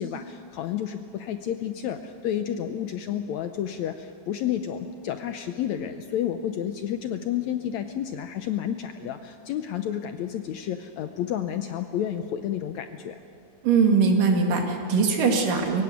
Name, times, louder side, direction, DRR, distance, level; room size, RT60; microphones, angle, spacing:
voice 1, 0.0-13.2, left 10 dB, 75° left, 8 dB, 1.7 m, -30 dB
voice 2, 13.6-15.8, right 5 dB, 75° right, 2 dB, 3.8 m, -21 dB
23.0 x 16.0 x 9.4 m, 2.5 s
omnidirectional pair, 3.9 m